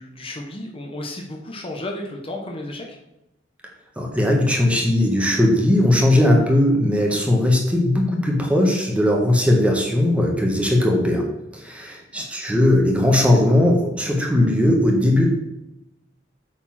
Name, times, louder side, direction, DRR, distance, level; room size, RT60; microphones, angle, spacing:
voice 1, 0.0-3.0 12.1-12.2, left 1 dB, 30° left, 0 dB, 1.2 m, -33 dB
voice 2, 4.0-15.3, left 1 dB, 5° right, 1 dB, 1.5 m, -18 dB
8.7 x 4.3 x 5.9 m, 0.88 s
head